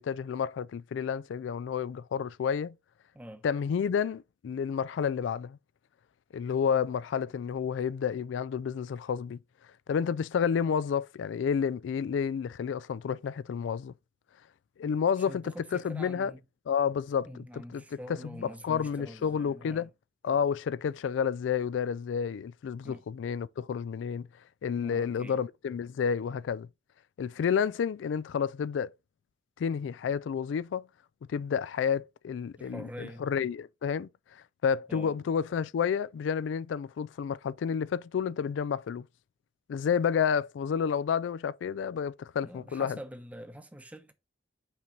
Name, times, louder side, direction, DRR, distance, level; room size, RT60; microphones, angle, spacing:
voice 1, 0.0-2.7 3.4-5.6 6.3-9.4 9.9-13.9 14.8-16.3 16.7-17.8 18.1-19.9 20.2-24.3 24.6-26.7 27.2-28.9 29.6-30.9 31.3-34.1 34.6-39.1 39.7-43.0, left 7 dB, 80° left, 0.3 m, -30 dB
voice 2, 3.1-3.4 15.3-16.4 17.3-19.9 22.8-23.0 24.8-25.4 32.6-33.2 34.9-35.1 42.4-44.1, equal, 10° right, 0.8 m, -45 dB
5.9 x 4.5 x 3.8 m
head